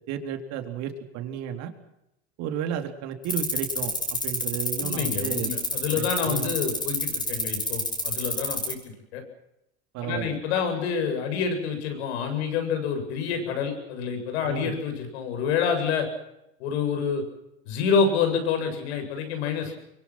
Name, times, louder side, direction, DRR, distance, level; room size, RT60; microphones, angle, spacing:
voice 1, 0.1-1.7 2.4-5.5 5.9-6.5 9.9-10.4 14.5-14.7, right 9 dB, 55° right, 5 dB, 3.9 m, -33 dB
sound 1, 3.2-8.7, left 2 dB, 15° left, 6.0 m, -28 dB
voice 2, 4.8-8.8 9.1-9.2 10.0-16.1 16.6-17.2 17.7-19.8, left 6 dB, 80° left, 6 dB, 7.9 m, -27 dB
24.5 x 23.5 x 6.2 m, 0.84 s
supercardioid pair, 110°, 32 cm